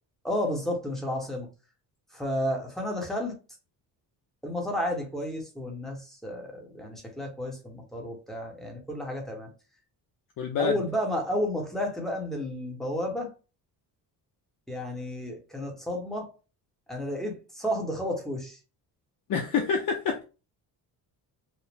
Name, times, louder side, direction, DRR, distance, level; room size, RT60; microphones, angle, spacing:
voice 1, 0.2-1.5 2.1-3.4 4.4-9.5 10.6-13.3 14.7-16.3 16.9-18.6, equal, ahead, 0.9 m, -32 dB
voice 2, 10.4-10.8 19.3-20.2, left 6 dB, 55° left, 0.6 m, -27 dB
5.0 x 2.0 x 3.3 m
cardioid pair, 175°, 40 cm